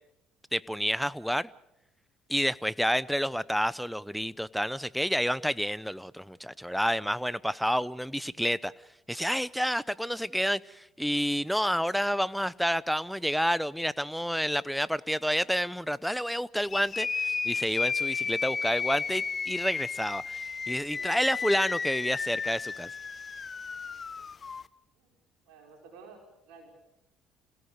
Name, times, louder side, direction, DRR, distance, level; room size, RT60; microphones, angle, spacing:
voice 1, 0.5-1.5 2.3-8.7 9.1-22.9, equal, ahead, 18 dB, 0.7 m, -29 dB
sound 1, 16.7-24.6, left 5 dB, 35° left, 0.9 m, -33 dB
voice 2, 20.9-21.3 24.9-25.1 25.4-26.7, right 4 dB, 75° right, 2 dB, 5.1 m, -52 dB
29.5 x 17.0 x 6.7 m, 0.86 s
hypercardioid pair, 60°, 0 cm